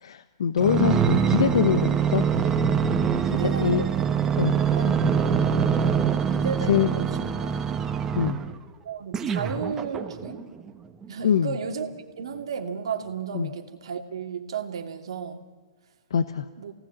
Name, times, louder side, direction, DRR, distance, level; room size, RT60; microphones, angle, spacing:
voice 1, 0.0-2.2 3.4-3.9 4.4-4.6 6.7-6.9 8.1-8.4 11.2-11.6 13.3-13.5 16.1-16.4, left 8 dB, 80° left, 11 dB, 1.1 m, -24 dB
sound 1, 0.6-8.5 9.1-10.4 11.0-11.1, right 7 dB, 15° right, 1.3 m, -24 dB
voice 2, 3.3-3.9 4.5-5.3 6.3-7.5 8.8-10.4 11.1-11.9 12.2-15.5 16.6-16.7, right 6 dB, 85° right, 5 dB, 2.6 m, -33 dB
26.0 x 18.5 x 8.9 m, 1.4 s
hypercardioid pair, 150°, 3 cm